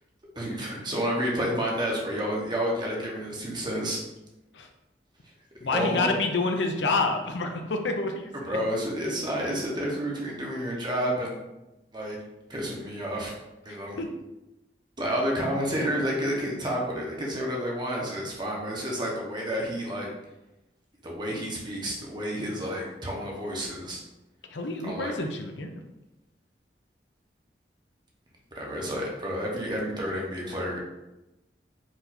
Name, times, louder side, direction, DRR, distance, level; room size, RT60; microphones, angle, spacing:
voice 1, 0.4-4.0 5.6-6.2 8.3-11.4 11.9-12.2 12.5-13.3 13.6-14.0 15.0-20.1 21.0-24.0 24.8-25.1 28.5-30.8, equal, 25° right, -2 dB, 1.0 m, -30 dB
voice 2, 5.6-8.6 14.0-14.1 24.5-25.7, left 3 dB, 90° left, 4 dB, 0.6 m, -28 dB
4.6 x 2.7 x 4.2 m, 0.98 s
head